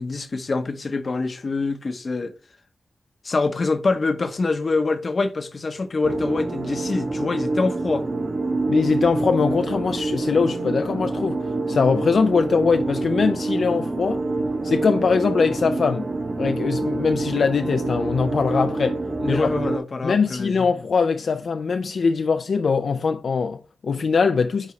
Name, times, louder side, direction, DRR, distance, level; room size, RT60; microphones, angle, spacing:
voice 1, 0.0-2.3 3.2-8.1 19.2-20.7, left 3 dB, 40° left, 0.8 m, -25 dB
sound 1, 6.0-19.8, right 2 dB, 35° right, 1.0 m, -26 dB
voice 2, 8.7-14.2 14.6-16.1 16.4-19.0 19.3-19.5 20.0-24.7, left 5 dB, 65° left, 0.5 m, -22 dB
9.8 x 4.1 x 3.1 m
wide cardioid pair, 130°, 0 cm